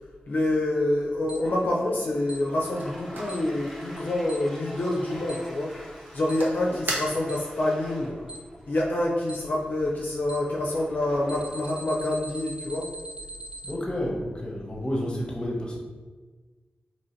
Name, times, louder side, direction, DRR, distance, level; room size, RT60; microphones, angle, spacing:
voice 1, 0.3-5.8 6.1-8.2 8.7-12.9, left 1 dB, 60° left, -2 dB, 0.5 m, -27 dB
Toilet flush, 1.2-14.3, equal, 5° left, 1.1 m, -46 dB
Alarm, 1.3-1.4 2.3-2.4 3.3-3.4 4.3-4.4 5.3-5.4 6.3-6.4 7.3-7.4 8.3-8.4 9.3-9.4 10.3-10.4 11.3-13.7, right 2 dB, 35° right, 0.3 m, -40 dB
sound 1, 2.4-7.6, right 1 dB, 75° right, 0.8 m, -39 dB
voice 2, 13.6-15.8, equal, 25° left, -2 dB, 0.8 m, -30 dB
2.9 x 2.7 x 4.4 m, 1.3 s
wide cardioid pair, 130°, 3 cm